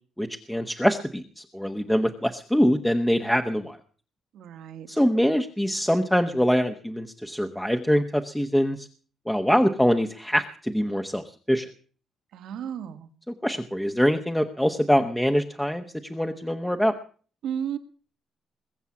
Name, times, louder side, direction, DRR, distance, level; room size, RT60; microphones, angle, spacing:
voice 1, 0.2-3.8 4.9-8.9 9.3-11.7 13.4-15.8 16.1-16.9, equal, 5° left, 6 dB, 1.0 m, -24 dB
voice 2, 4.3-4.9 12.3-13.1 17.4-17.8, right 8 dB, 80° right, 9 dB, 1.9 m, -33 dB
21.5 x 7.3 x 8.5 m, 0.43 s
cardioid pair, 140°, 0 cm